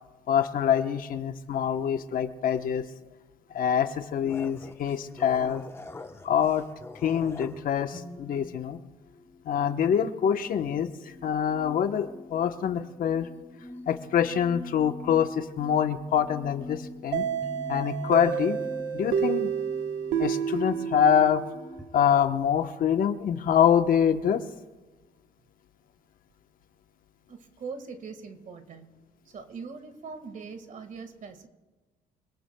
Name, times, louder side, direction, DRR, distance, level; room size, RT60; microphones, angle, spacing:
voice 1, 0.3-2.8 3.5-5.6 6.2-6.6 7.0-8.8 9.4-10.9 11.2-13.3 13.9-17.2 17.7-18.6 18.9-19.5 20.2-21.4 21.9-24.4, left 8 dB, 55° left, 7 dB, 1.1 m, -25 dB
sound 1, 4.3-7.6, left 3 dB, 15° left, 1.0 m, -44 dB
sound 2, 7.9-21.9, left 1 dB, ahead, 2.2 m, -45 dB
sound 3, 17.1-21.8, right 8 dB, 90° right, 1.2 m, -30 dB
voice 2, 27.3-29.0 29.3-31.5, right 5 dB, 50° right, 7 dB, 1.8 m, -41 dB
25.5 x 18.0 x 2.3 m, 1.2 s
cardioid pair, 110°, 17 cm